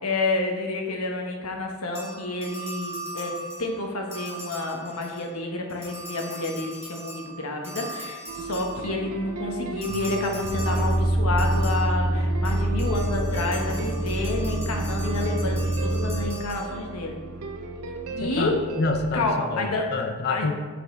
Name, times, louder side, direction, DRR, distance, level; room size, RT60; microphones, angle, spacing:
voice 1, 0.0-17.2 18.2-18.5 19.1-19.9 20.3-20.5, left 2 dB, 80° left, 1 dB, 1.2 m, -29 dB
sound 1, 1.9-5.4 5.7-9.2 9.8-17.1, right 2 dB, 15° right, 2.1 m, -40 dB
sound 2, 8.3-19.3, right 2 dB, 80° right, 0.7 m, -37 dB
sound 3, 10.4-16.2, right 1 dB, 35° right, 2.0 m, -25 dB
voice 2, 18.2-20.5, left 3 dB, 45° left, 6 dB, 0.5 m, -28 dB
6.3 x 5.7 x 4.4 m, 1.4 s
head